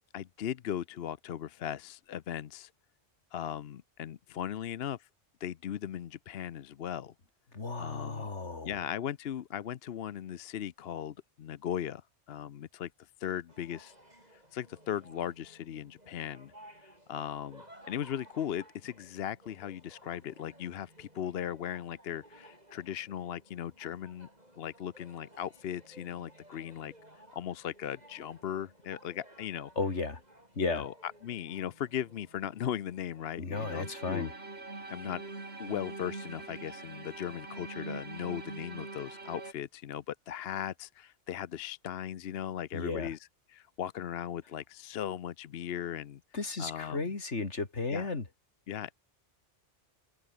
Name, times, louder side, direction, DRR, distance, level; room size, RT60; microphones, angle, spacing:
voice 1, 0.1-2.7 3.3-5.1 5.4-7.1 7.8-8.3 8.6-12.0 12.3-12.9 13.2-13.9 14.5-16.5 16.8-24.3 24.6-26.9 27.3-29.7 30.6-34.3 34.9-35.2 35.6-43.2 43.5-46.2 46.6-47.0 47.9-48.1 48.7-48.9, left 10 dB, 65° left, 0.9 m, -38 dB
voice 2, 7.5-8.8 29.8-30.2 30.6-30.8 33.4-34.3 42.7-43.1 46.3-48.3, left 3 dB, 85° left, 3.1 m, -34 dB
sound 1, 13.5-33.3, right 1 dB, 35° right, 8.2 m, -57 dB
sound 2, 33.5-39.5, right 3 dB, 65° right, 3.3 m, -43 dB
open air
omnidirectional pair, 1.2 m